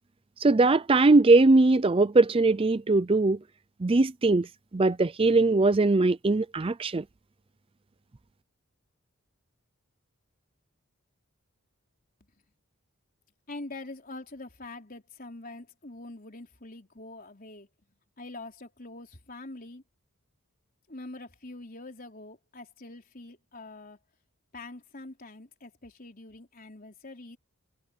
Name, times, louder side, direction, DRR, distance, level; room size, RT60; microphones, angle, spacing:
voice 1, 0.4-3.4 3.8-4.5 4.7-7.0, right 3 dB, 25° right, 0.5 m, -21 dB
voice 2, 13.5-17.7 18.2-19.8 20.9-24.0 24.5-27.4, left 2 dB, 40° left, 4.0 m, -44 dB
head